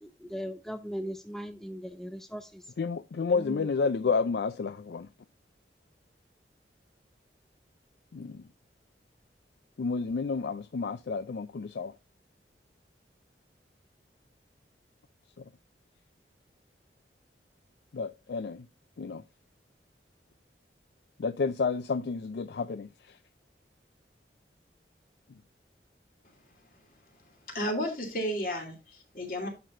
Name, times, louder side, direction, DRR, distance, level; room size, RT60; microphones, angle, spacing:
voice 1, 0.0-2.6 3.3-3.7, equal, ahead, 0.5 m, -38 dB
voice 2, 2.8-5.1 8.1-8.5 9.8-11.9 17.9-18.7 19.0-19.2 21.2-23.2, left 4 dB, 70° left, 0.4 m, -30 dB
voice 3, 27.5-29.5, equal, 50° left, 2.8 m, -32 dB
11.0 x 6.0 x 2.6 m
head